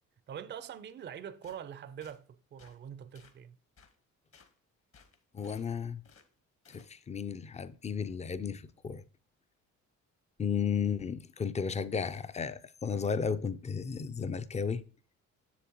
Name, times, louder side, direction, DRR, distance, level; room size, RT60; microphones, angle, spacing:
voice 1, 0.3-3.6, right 8 dB, 35° right, 0.5 m, -44 dB
sound 1, 1.4-1.6 2.0-2.2 2.6-2.8 3.1-3.4 3.8-3.9 4.3-4.5 4.9-5.7 6.0-6.3 6.6-6.9, left 5 dB, 45° left, 1.1 m, -60 dB
voice 2, 5.3-6.0 6.7-9.0 10.4-14.8, left 6 dB, 25° left, 0.4 m, -34 dB
7.2 x 6.8 x 2.9 m
cardioid pair, 90°, 30 cm